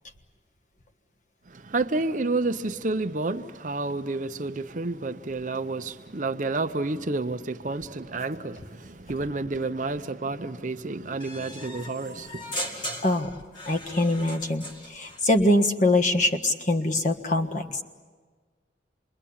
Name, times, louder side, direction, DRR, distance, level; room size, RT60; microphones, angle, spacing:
voice 1, 1.5-12.9, right 3 dB, 45° right, 0.7 m, -30 dB
sound 1, 11.2-15.2, equal, 25° left, 2.1 m, -38 dB
voice 2, 13.7-14.6 14.9-17.6, left 1 dB, 40° left, 1.5 m, -23 dB
27.5 x 22.0 x 8.7 m
head